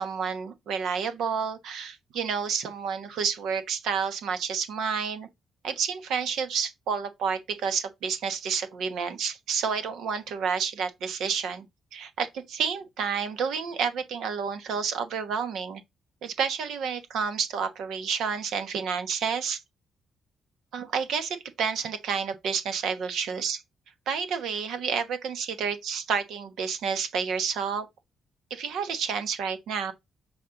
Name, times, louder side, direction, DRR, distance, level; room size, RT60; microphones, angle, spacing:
voice 1, 0.0-5.3 5.6-11.6 11.9-15.8 16.2-19.6 20.7-23.6 24.1-27.9 28.5-29.9, right 6 dB, 80° right, 1.1 m, -30 dB
7.2 x 4.2 x 3.9 m
cardioid pair, 175°, 0 cm